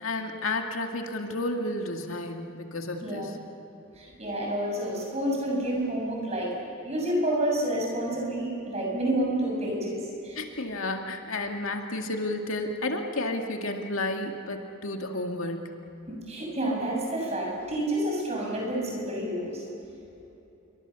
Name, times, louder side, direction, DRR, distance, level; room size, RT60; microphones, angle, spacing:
voice 1, 0.0-3.4 10.4-15.8, left 2 dB, 75° left, 4 dB, 2.2 m, -32 dB
voice 2, 3.0-3.3 3.9-6.5 6.8-10.4 16.1-19.6, right 1 dB, 30° right, -1 dB, 6.8 m, -29 dB
28.0 x 24.0 x 7.1 m, 2.9 s
head